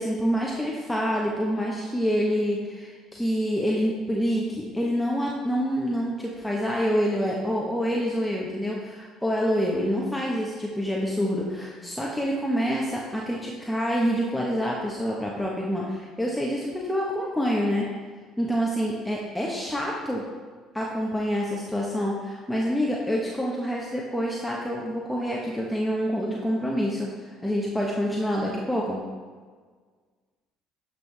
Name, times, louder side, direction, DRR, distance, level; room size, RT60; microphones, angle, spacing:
voice 1, 0.0-17.9 18.4-20.2 20.7-29.0, equal, 5° left, -3 dB, 1.3 m, -27 dB
12.0 x 5.4 x 3.5 m, 1.5 s
hypercardioid pair, 55°, 0 cm